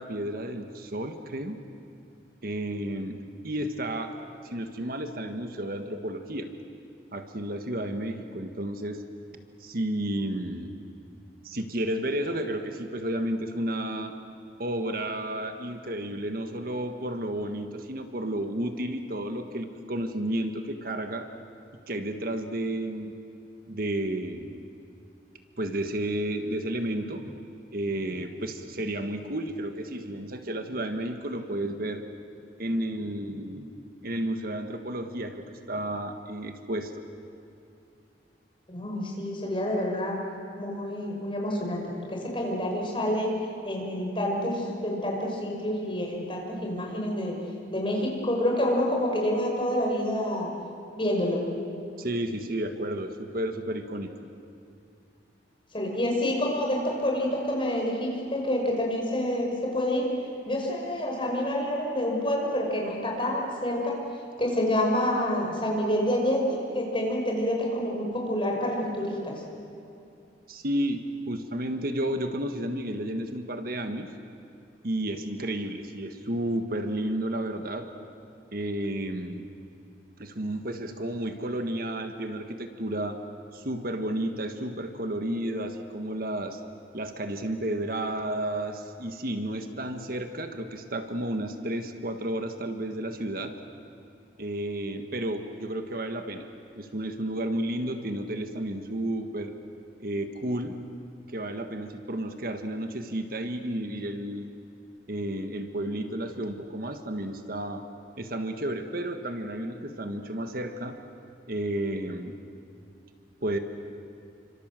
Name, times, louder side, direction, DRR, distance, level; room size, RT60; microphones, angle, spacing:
voice 1, 0.0-1.6 2.4-4.2 4.4-6.5 7.1-9.0 9.6-10.8 11.4-14.2 14.6-21.3 21.9-23.1 23.7-24.6 25.6-32.0 32.6-33.7 34.0-37.0 52.0-54.3 70.5-74.1 74.8-77.9 78.5-79.5 80.2-83.2 83.5-86.6 86.9-93.5 94.4-96.5 96.8-99.5 100.0-100.8 101.3-104.5 105.1-107.8 108.2-111.0 111.5-112.3 113.4-113.6, right 1 dB, 55° right, 6 dB, 1.5 m, -32 dB
voice 2, 38.7-40.2 40.6-41.8 42.1-43.3 43.6-47.4 47.7-50.5 51.0-51.4 55.7-60.1 60.5-63.9 64.4-69.3, left 1 dB, 30° left, -1 dB, 5.9 m, -28 dB
29.0 x 26.0 x 7.6 m, 2.6 s
head